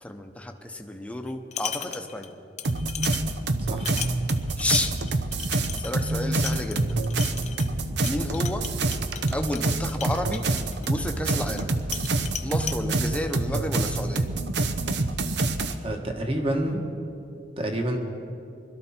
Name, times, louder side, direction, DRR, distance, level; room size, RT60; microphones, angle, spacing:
voice 1, 0.0-2.3 4.6-5.0 5.8-7.0 8.0-8.6 9.3-10.4 10.9-11.7 12.4-14.3, left 1 dB, 5° left, 5 dB, 0.8 m, -31 dB
sound 1, 1.3-2.3 2.6-11.7 11.9-12.8, left 8 dB, 40° left, 0.7 m, -37 dB
sound 2, 2.6-15.7, right 2 dB, 70° right, 0.7 m, -27 dB
voice 2, 15.8-16.8 17.6-18.0, right 1 dB, 30° right, 3 dB, 1.5 m, -28 dB
21.5 x 12.5 x 4.4 m, 2.6 s
head